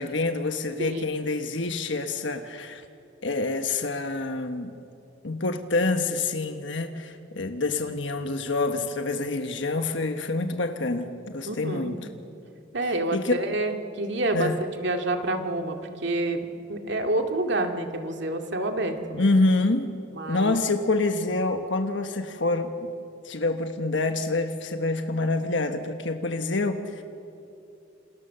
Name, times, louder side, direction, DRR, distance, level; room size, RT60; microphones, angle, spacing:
voice 1, 0.0-2.8 3.2-4.7 5.2-12.1 12.9-13.3 14.3-14.6 19.2-19.9 20.3-22.9 23.2-27.0, left 2 dB, 65° left, 6 dB, 1.3 m, -27 dB
voice 2, 11.5-12.0 12.7-19.3 20.1-20.5, right 2 dB, 60° right, 4 dB, 2.3 m, -28 dB
28.0 x 27.5 x 6.9 m, 2.7 s
head